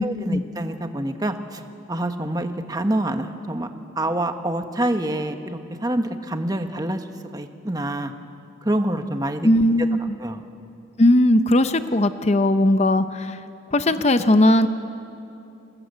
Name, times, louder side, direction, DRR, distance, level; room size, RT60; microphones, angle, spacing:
voice 1, 0.0-1.6 1.9-3.7 4.0-7.0 7.3-8.1 8.6-9.5 10.2-10.4, right 1 dB, 20° right, 7 dB, 1.1 m, -26 dB
voice 2, 9.4-10.2 11.0-13.4 13.7-14.7, left 1 dB, 30° left, 10 dB, 0.7 m, -18 dB
28.0 x 18.5 x 8.1 m, 2.7 s
head